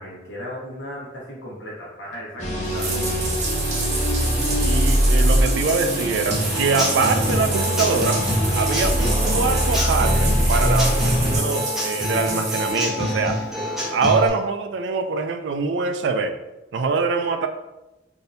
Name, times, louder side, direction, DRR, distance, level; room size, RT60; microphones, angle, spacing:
voice 1, 0.0-3.1, equal, 80° left, -5 dB, 1.2 m, -36 dB
sound 1, 2.4-11.4, equal, 40° left, 0.7 m, -22 dB
Bathtub (filling or washing), 2.6-12.7, right 3 dB, 40° right, 0.7 m, -29 dB
voice 2, 4.6-8.2 8.5-13.4 13.9-16.4 16.7-17.5, right 4 dB, 70° right, 7 dB, 0.3 m, -24 dB
Human voice / Acoustic guitar / Drum, 6.3-14.3, equal, ahead, 0.6 m, -26 dB
3.6 x 2.7 x 2.6 m, 1.0 s
head